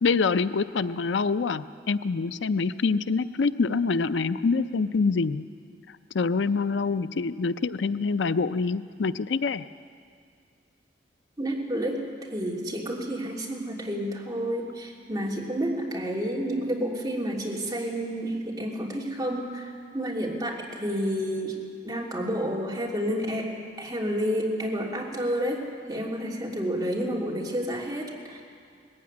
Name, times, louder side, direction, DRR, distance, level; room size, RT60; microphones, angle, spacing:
voice 1, 0.0-5.4 6.1-9.6, left 4 dB, 85° left, 13 dB, 0.5 m, -25 dB
voice 2, 11.4-12.0 12.3-21.6 21.8-23.5 23.8-25.6 25.9-28.4, equal, 20° right, -3 dB, 3.1 m, -30 dB
19.5 x 15.5 x 9.7 m, 2.2 s
head